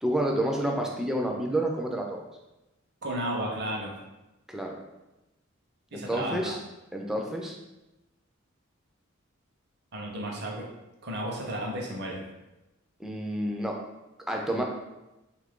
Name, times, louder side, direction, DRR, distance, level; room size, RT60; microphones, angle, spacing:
voice 1, 0.0-2.3 4.5-4.8 5.9-6.6 6.9-7.6 13.0-13.8 14.3-14.6, right 1 dB, ahead, 0 dB, 0.3 m, -29 dB
voice 2, 3.0-3.9 5.9-6.5 9.9-10.6 11.0-12.2, right 1 dB, 50° right, -1 dB, 0.7 m, -33 dB
3.0 x 2.4 x 3.6 m, 1.0 s
head